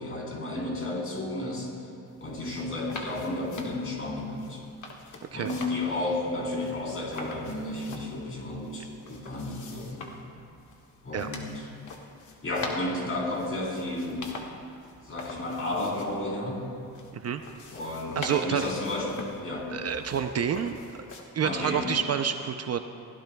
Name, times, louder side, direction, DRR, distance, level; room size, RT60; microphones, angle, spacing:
voice 1, 0.0-1.7 2.2-4.6 5.3-10.1 11.0-11.7 12.4-14.3 15.0-16.7 17.7-19.7 21.4-21.9, left 2 dB, 40° left, -3 dB, 4.0 m, -32 dB
sound 1, 2.1-21.2, left 3 dB, 55° left, 1.8 m, -44 dB
voice 2, 18.2-18.7 19.7-21.1 21.3-22.8, right 7 dB, 45° right, 7 dB, 0.6 m, -28 dB
23.0 x 16.0 x 2.3 m, 2.5 s
cardioid pair, 105°, 35 cm